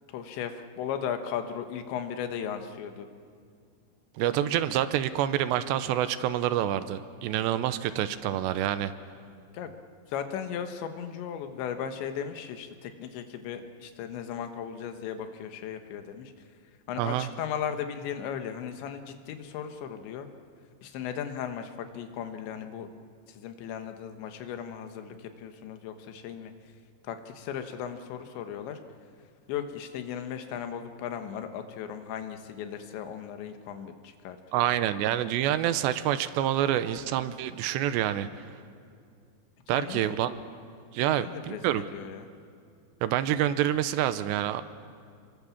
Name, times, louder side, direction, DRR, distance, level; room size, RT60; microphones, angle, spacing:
voice 1, 0.1-3.1 9.5-9.7 10.1-16.3 16.9-20.3 20.8-22.9 23.3-26.5 27.0-28.8 29.5-34.7 39.7-40.2 41.1-42.3, left 8 dB, 85° left, 7 dB, 3.6 m, -36 dB
voice 2, 4.2-8.9 17.0-17.3 34.5-38.3 39.7-40.4 40.9-41.9 43.0-44.6, right 12 dB, 80° right, 12 dB, 3.0 m, -27 dB
28.5 x 23.0 x 7.2 m, 2.3 s
omnidirectional pair, 5.1 m